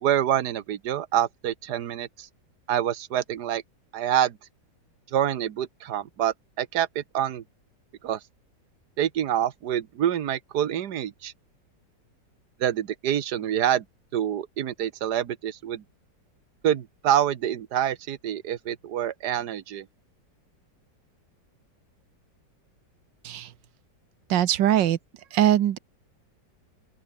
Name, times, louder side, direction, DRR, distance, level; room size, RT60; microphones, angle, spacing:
voice 1, 0.0-2.3 2.7-3.6 3.9-4.4 5.1-7.4 8.0-8.2 9.0-11.3 12.6-13.9 14.1-15.8 16.6-19.9, right 10 dB, 70° right, 1.7 m, -26 dB
voice 2, 24.3-25.0 25.3-25.8, right 11 dB, 85° right, 1.7 m, -21 dB
open air
omnidirectional pair, 1.9 m